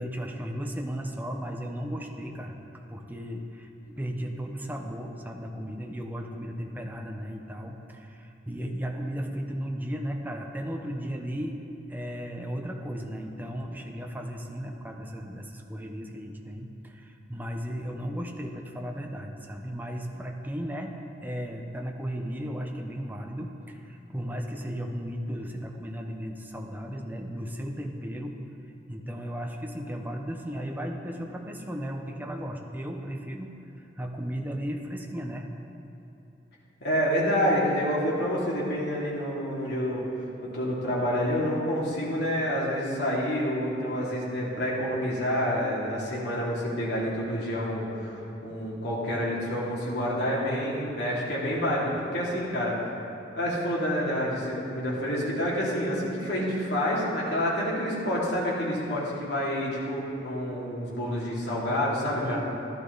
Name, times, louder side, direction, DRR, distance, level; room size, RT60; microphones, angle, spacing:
voice 1, 0.0-2.6 2.9-11.6 11.9-28.4 28.9-35.5 62.2-62.4, equal, 10° right, 2 dB, 1.0 m, -35 dB
voice 2, 36.8-40.0 40.4-52.8 53.4-62.4, equal, 65° left, -6 dB, 3.3 m, -28 dB
15.0 x 11.5 x 4.1 m, 3.0 s
head